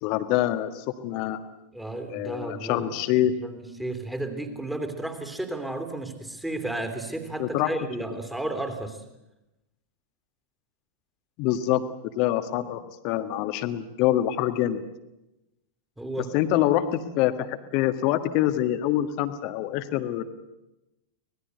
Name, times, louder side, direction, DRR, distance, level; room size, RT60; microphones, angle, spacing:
voice 1, 0.0-1.4 2.1-3.3 7.4-7.7 11.4-11.8 12.1-14.8 16.3-20.2, left 13 dB, 45° left, 10 dB, 1.6 m, -25 dB
voice 2, 1.7-2.9 3.4-9.0 16.0-16.3, right 2 dB, 5° right, 7 dB, 3.0 m, -33 dB
25.0 x 19.5 x 8.1 m, 0.94 s
figure-of-eight pair, 90°, 0 cm